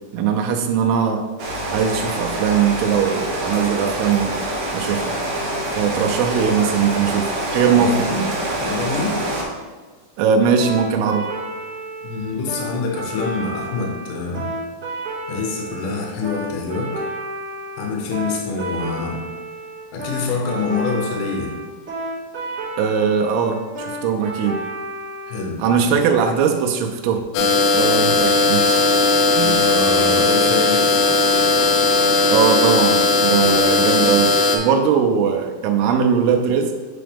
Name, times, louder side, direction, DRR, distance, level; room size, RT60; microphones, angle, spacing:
voice 1, 0.1-1.2 1.7-4.4 4.7-5.2 5.8-8.1 10.2-11.3 22.8-24.6 25.6-28.9 29.3-29.6 32.3-36.7, right 6 dB, 85° right, 3 dB, 2.5 m, -20 dB
Rain, 1.4-9.4, right 1 dB, 65° right, 1.8 m, -26 dB
voice 2, 7.6-9.2 12.0-14.5 15.3-17.0 17.8-19.2 19.9-21.5 25.3-25.9 29.4-31.0, left 4 dB, 70° left, -1 dB, 2.2 m, -26 dB
sound 1, 10.6-25.4, right 2 dB, 35° right, 1.6 m, -31 dB
sound 2, 27.3-34.6, left 3 dB, 90° left, 2.6 m, -17 dB
7.7 x 3.8 x 3.5 m, 1.3 s
omnidirectional pair, 4.5 m